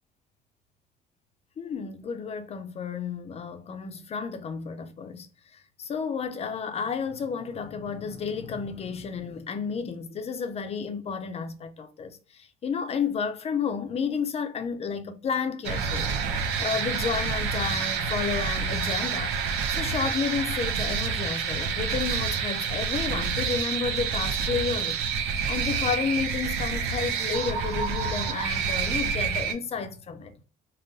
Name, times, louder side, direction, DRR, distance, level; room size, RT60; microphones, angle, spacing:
voice 1, 1.6-19.3 19.7-25.0 25.5-30.3, left 6 dB, 35° left, 0.5 m, -31 dB
sound 1, 15.6-29.5, right 6 dB, 85° right, 0.5 m, -28 dB
3.6 x 2.1 x 2.6 m
cardioid pair, 110°, 17 cm